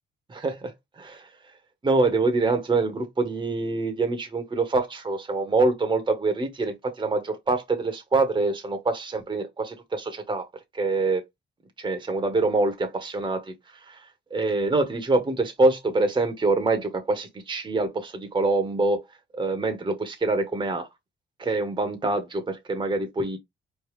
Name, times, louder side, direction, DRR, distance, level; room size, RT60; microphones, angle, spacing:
voice 1, 0.3-1.3 1.8-10.5 10.7-11.2 11.8-14.0 14.3-19.0 19.3-20.9 21.4-23.4, right 3 dB, 25° right, 1.1 m, -25 dB
4.4 x 3.3 x 3.1 m
cardioid pair, 90°, 20 cm